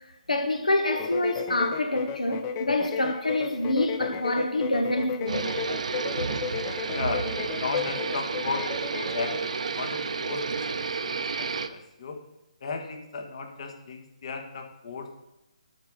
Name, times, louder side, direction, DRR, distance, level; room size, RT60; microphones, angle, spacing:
voice 1, 0.3-5.5, left 1 dB, 90° left, 1.4 m, -26 dB
sound 1, 0.9-9.5, left 7 dB, 25° left, 0.7 m, -34 dB
sound 2, 5.3-11.7, right 5 dB, 65° right, 0.7 m, -31 dB
voice 2, 6.9-8.7 9.1-12.2 12.6-15.1, left 4 dB, 50° left, 1.6 m, -35 dB
11.5 x 4.8 x 6.4 m
figure-of-eight pair, 145°, 4 cm